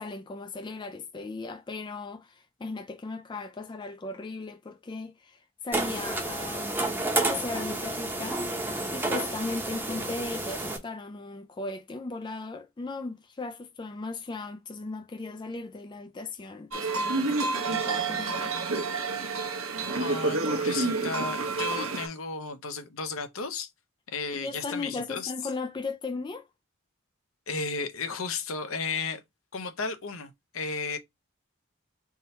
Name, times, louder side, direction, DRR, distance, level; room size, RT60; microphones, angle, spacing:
voice 1, 0.0-6.9 7.2-18.6 24.3-26.5, left 3 dB, 20° left, 0.3 m, -37 dB
sound 1, 5.7-10.8, right 2 dB, 10° right, 0.8 m, -30 dB
sound 2, 16.7-22.1, right 3 dB, 75° right, 1.0 m, -29 dB
voice 2, 20.0-23.7 24.1-25.3 27.5-29.2 29.5-31.0, left 4 dB, 70° left, 0.8 m, -34 dB
3.6 x 2.8 x 4.2 m
head